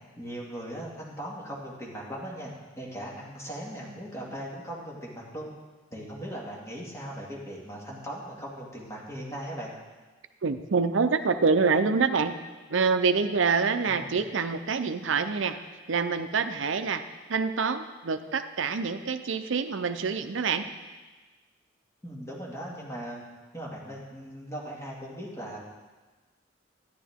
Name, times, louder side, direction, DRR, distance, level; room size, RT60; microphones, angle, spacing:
voice 1, 0.2-5.5 5.9-9.7 13.9-14.1 22.0-23.2 23.5-25.6, equal, 15° left, -4 dB, 2.1 m, -39 dB
voice 2, 10.4-12.3 12.7-15.6 15.9-17.0 17.3-20.7, right 5 dB, 70° right, 9 dB, 0.6 m, -26 dB
12.0 x 10.5 x 3.6 m, 1.3 s
head